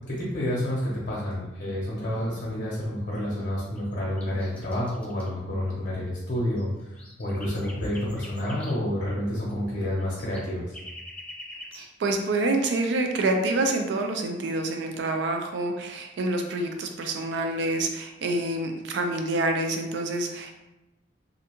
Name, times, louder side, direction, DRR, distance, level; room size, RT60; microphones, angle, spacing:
voice 1, 0.1-10.7, left 1 dB, 50° left, -6 dB, 0.6 m, -29 dB
sound 1, 3.1-3.4 3.7-5.3 6.1-6.2 6.3-8.7 9.5-9.6 9.8-11.9, left 1 dB, 5° left, 0.3 m, -45 dB
voice 2, 11.7-20.5, right 2 dB, 65° right, 4 dB, 0.4 m, -27 dB
2.5 x 2.2 x 2.9 m, 1.0 s
head